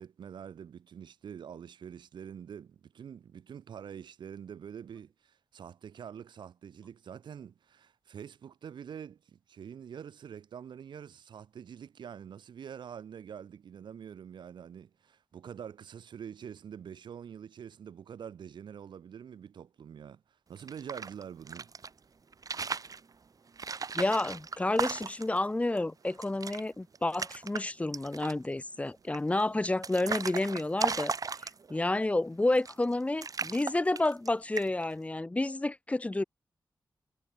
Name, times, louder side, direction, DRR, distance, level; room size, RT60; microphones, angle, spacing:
voice 1, 0.0-21.7, right 8 dB, 90° right, 1.5 m, -46 dB
sound 1, 20.6-21.9 22.3-23.0 23.6-25.4 25.8-25.9 26.1-26.6 26.9-27.6 27.9-28.5 29.1-31.8 32.5-32.9 33.2-34.3 34.6-34.9, right 5 dB, 50° right, 0.6 m, -36 dB
voice 2, 23.9-31.1 31.7-36.2, left 2 dB, 15° left, 0.4 m, -30 dB
cardioid pair, 45°, 8 cm